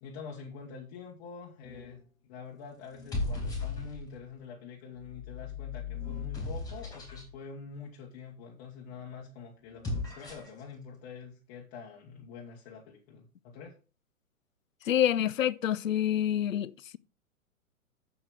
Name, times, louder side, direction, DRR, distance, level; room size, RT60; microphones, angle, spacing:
voice 1, 0.0-9.9 10.1-13.7, left 5 dB, 30° left, 1.4 m, -46 dB
sound 1, 1.6-2.1 2.9-4.2 5.0-7.3 9.6-10.6, left 3 dB, 10° left, 2.9 m, -37 dB
voice 2, 14.9-17.0, left 10 dB, 70° left, 0.6 m, -27 dB
7.7 x 7.1 x 4.7 m
figure-of-eight pair, 115°, 42 cm